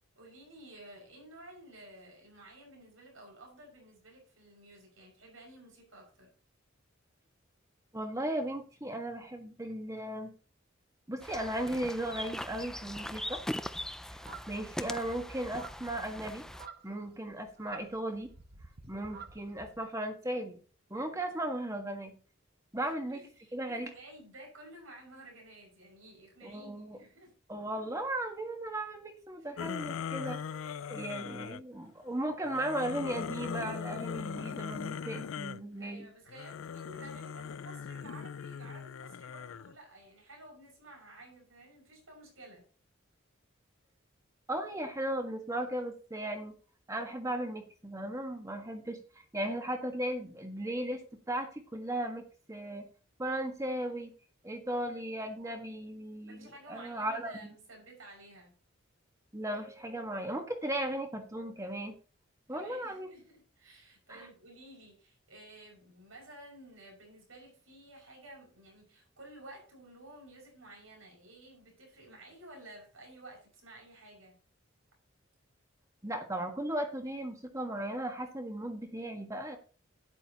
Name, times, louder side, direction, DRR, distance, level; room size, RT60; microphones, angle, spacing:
voice 1, 0.2-6.3 22.8-27.3 35.8-42.6 56.3-58.5 62.5-74.4, right 1 dB, 85° right, 0 dB, 6.5 m, -53 dB
voice 2, 7.9-10.3 11.1-13.4 14.5-16.4 16.8-18.3 18.9-20.6 20.9-22.1 22.7-23.2 23.5-23.9 26.4-27.0 27.5-36.1 44.5-46.5 46.9-49.0 49.3-52.9 53.2-54.1 54.4-57.5 59.3-61.9 62.5-63.1 64.1-64.3 76.0-79.6, right 1 dB, 15° right, 5 dB, 1.6 m, -36 dB
sound 1, 11.2-16.7, left 1 dB, 5° left, 0.4 m, -41 dB
sound 2, 13.7-19.9, right 5 dB, 50° right, 1.2 m, -51 dB
sound 3, 29.6-31.6 32.4-35.6 36.3-39.7, left 7 dB, 80° left, 0.4 m, -40 dB
12.0 x 10.5 x 3.0 m, 0.39 s
head